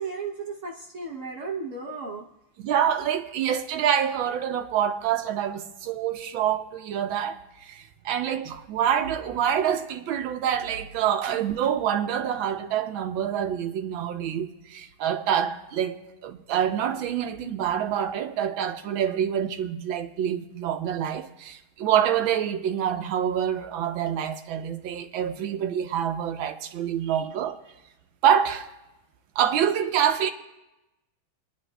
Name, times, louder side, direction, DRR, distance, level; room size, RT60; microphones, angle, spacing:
voice 1, 0.0-2.3 11.3-11.5 27.0-27.3 27.7-27.8, right 4 dB, 65° right, 0.8 m, -35 dB
voice 2, 2.6-27.6 28.2-28.7 29.4-30.3, right 9 dB, 80° right, 1.5 m, -26 dB
25.0 x 10.0 x 2.2 m
omnidirectional pair, 2.2 m